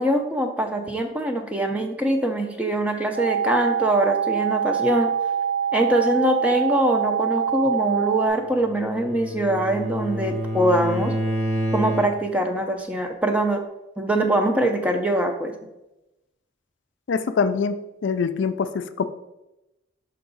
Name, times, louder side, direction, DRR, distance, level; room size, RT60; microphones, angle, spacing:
voice 1, 0.0-5.1 5.7-11.1 11.7-13.6 14.0-15.5, right 1 dB, 5° right, 3 dB, 0.5 m, -23 dB
sound 1, 3.1-8.3, right 8 dB, 70° right, 1.4 m, -24 dB
Bowed string instrument, 8.5-12.4, equal, 45° right, 2.2 m, -28 dB
voice 2, 17.1-19.0, left 5 dB, 70° left, 10 dB, 0.4 m, -24 dB
5.7 x 4.7 x 3.9 m, 0.93 s
head